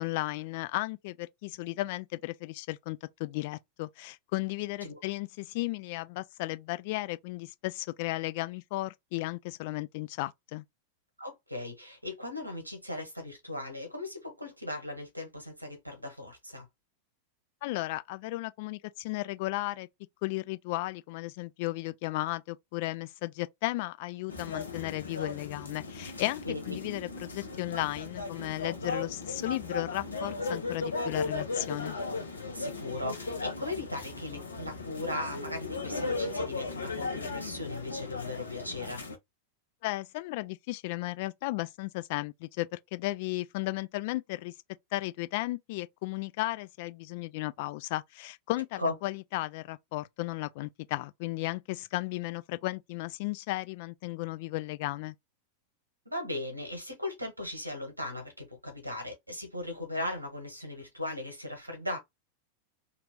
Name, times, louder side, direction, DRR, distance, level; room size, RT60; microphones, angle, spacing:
voice 1, 0.0-10.6 17.6-19.9 20.2-32.0 39.8-44.5 44.9-55.1, left 19 dB, 50° left, 0.3 m, -35 dB
voice 2, 11.2-16.7 26.4-26.8 32.5-39.0 48.8-48.9 56.0-62.0, left 2 dB, 85° right, 1.2 m, -38 dB
sound 1, 24.3-39.2, left 3 dB, 75° left, 0.8 m, -37 dB
2.9 x 2.4 x 2.8 m
figure-of-eight pair, 90°, 0 cm